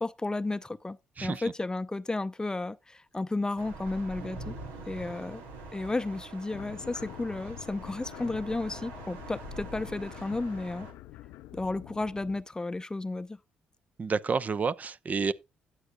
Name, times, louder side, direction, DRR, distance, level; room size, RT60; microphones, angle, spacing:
voice 1, 0.0-4.6 4.9-5.4 5.7-10.9 11.5-13.4, left 2 dB, 20° left, 0.6 m, -33 dB
Thunder / Rain, 3.6-10.9, right 3 dB, 90° right, 2.6 m, -45 dB
sound 1, 6.5-12.4, left 15 dB, 80° left, 0.4 m, -46 dB
voice 2, 14.0-15.3, right 5 dB, 40° right, 0.7 m, -29 dB
12.5 x 9.0 x 2.3 m
supercardioid pair, 55°, 4 cm